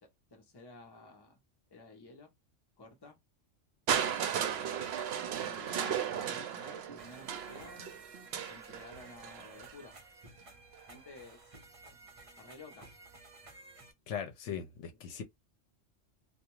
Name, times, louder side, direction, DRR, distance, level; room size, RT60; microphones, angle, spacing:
voice 1, 0.0-1.4 1.7-2.3 2.8-3.2 5.3-8.0 8.5-10.0 10.9-11.4 12.4-12.9 14.5-14.6 14.9-15.2, left 2 dB, 25° left, 0.8 m, -53 dB
Crushing, 3.9-9.8 10.7-10.8, right 8 dB, 65° right, 0.7 m, -35 dB
sound 1, 7.0-13.9, right 2 dB, 35° right, 0.7 m, -55 dB
voice 2, 14.1-15.2, left 8 dB, 75° left, 0.9 m, -39 dB
2.4 x 2.3 x 3.0 m
omnidirectional pair, 1.3 m